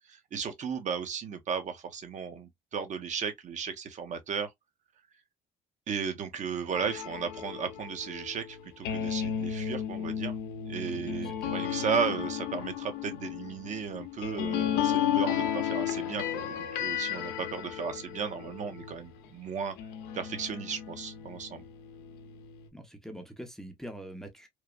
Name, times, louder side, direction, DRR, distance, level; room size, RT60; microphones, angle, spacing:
voice 1, 0.1-4.5 5.9-10.4 10.7-19.7 20.1-21.6, right 6 dB, 45° right, 0.8 m, -35 dB
sound 1, 6.7-19.3 19.8-22.7, left 9 dB, 85° left, 0.6 m, -34 dB
voice 2, 10.8-11.6 22.7-24.5, equal, ahead, 0.6 m, -44 dB
3.1 x 2.1 x 2.2 m
cardioid pair, 110°, 17 cm